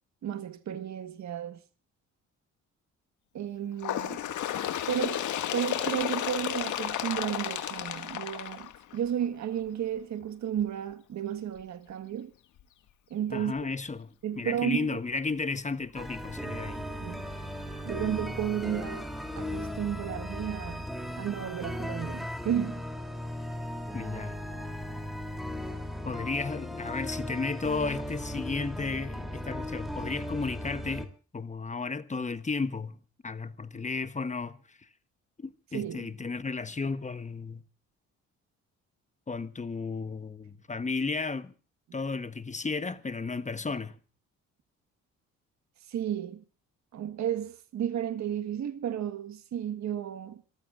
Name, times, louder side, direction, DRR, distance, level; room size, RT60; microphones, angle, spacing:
voice 1, 0.2-1.6 3.3-4.2 4.9-5.2 5.5-12.3 13.1-13.5 14.2-15.0 17.0-17.3 17.8-19.1 19.4-20.9 21.2-22.8 35.7-36.1 45.9-46.4 46.9-50.4, right 10 dB, 65° right, 1.5 m, -33 dB
Bird, 3.8-9.2 10.1-10.2 10.6-10.7 11.6-11.7 12.6-12.7 13.6-13.7, left 11 dB, 80° left, 1.9 m, -32 dB
voice 2, 13.3-16.9 23.9-24.4 26.0-34.8 35.4-37.6 39.3-41.5 41.9-44.0, left 4 dB, 25° left, 1.1 m, -34 dB
sound 1, 15.9-31.1, left 1 dB, ahead, 3.2 m, -37 dB
28.0 x 15.0 x 2.5 m
cardioid pair, 90°, 30 cm